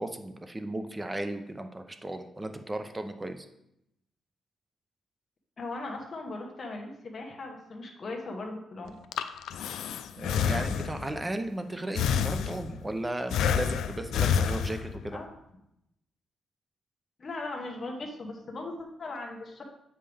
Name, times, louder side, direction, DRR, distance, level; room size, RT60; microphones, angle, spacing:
voice 1, 0.0-3.5 10.2-15.2, right 1 dB, 15° right, 7 dB, 0.6 m, -35 dB
voice 2, 5.6-8.9 15.1-15.3 17.2-19.6, left 2 dB, 35° left, 0 dB, 1.1 m, -38 dB
Breathing, 8.9-11.2 12.0-12.9 13.3-15.1, left 7 dB, 85° left, 0.4 m, -28 dB
8.1 x 5.5 x 3.4 m, 0.81 s
cardioid pair, 125°, 0 cm